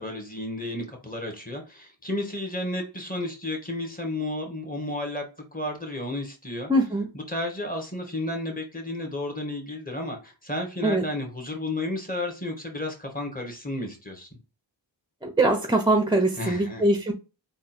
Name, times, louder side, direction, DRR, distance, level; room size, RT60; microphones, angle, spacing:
voice 1, 0.0-6.7 7.1-14.3 16.4-16.9, left 1 dB, 20° left, 1.6 m, -32 dB
voice 2, 6.7-7.1 10.8-11.0 15.2-17.1, right 1 dB, 10° right, 0.6 m, -22 dB
3.6 x 2.4 x 4.3 m
wide cardioid pair, 60°, 47 cm